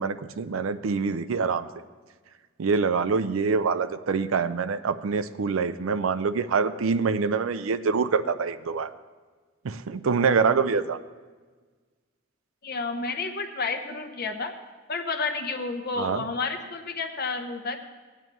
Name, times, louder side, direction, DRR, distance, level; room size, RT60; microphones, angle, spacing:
voice 1, 0.0-1.7 2.6-8.9 9.6-11.0 16.0-16.2, right 5 dB, 80° right, 12 dB, 0.5 m, -25 dB
voice 2, 12.6-14.5 14.9-17.8, left 4 dB, 50° left, 6 dB, 1.0 m, -30 dB
16.5 x 9.0 x 3.0 m, 1.4 s
head